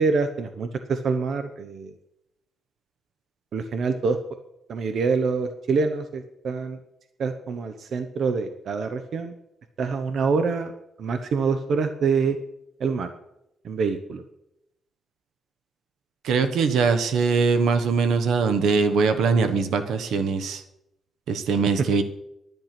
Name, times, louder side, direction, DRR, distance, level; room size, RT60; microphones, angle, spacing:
voice 1, 0.0-1.9 3.5-4.2 4.7-6.8 7.2-9.3 9.8-10.7 11.0-12.4 12.8-13.1 13.6-14.2, right 4 dB, 55° right, 9 dB, 0.8 m, -25 dB
voice 2, 16.2-20.6 21.3-22.0, right 5 dB, 80° right, 9 dB, 1.1 m, -22 dB
11.0 x 10.5 x 5.9 m, 0.84 s
cardioid pair, 150°, 0 cm